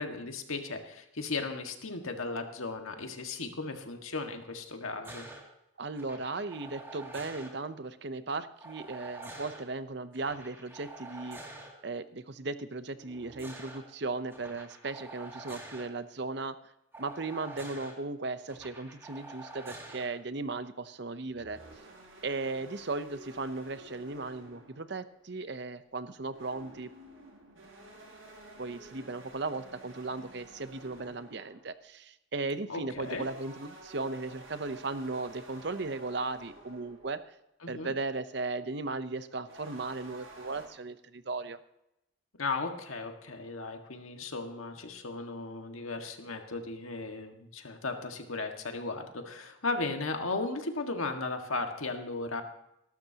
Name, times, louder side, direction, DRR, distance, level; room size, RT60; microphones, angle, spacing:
voice 1, 0.0-5.3 32.7-33.2 37.6-37.9 42.4-52.4, left 3 dB, 90° left, 4 dB, 1.8 m, -36 dB
sound 1, 5.0-5.4 6.0-7.5 8.6-9.6 10.1-11.7 13.0-13.8 14.3-15.9 16.9-17.9 18.5-20.1 21.3-21.7, right 2 dB, 10° right, 2.5 m, -47 dB
voice 2, 5.8-11.4 11.8-16.6 17.0-21.6 22.2-26.9 28.6-37.3 37.7-41.6, right 3 dB, 55° right, 12 dB, 0.8 m, -36 dB
sound 2, 21.5-25.4 26.1-31.7 33.0-37.2 39.5-40.7, right 1 dB, 80° right, 6.1 m, -52 dB
20.5 x 12.0 x 2.9 m, 0.86 s
head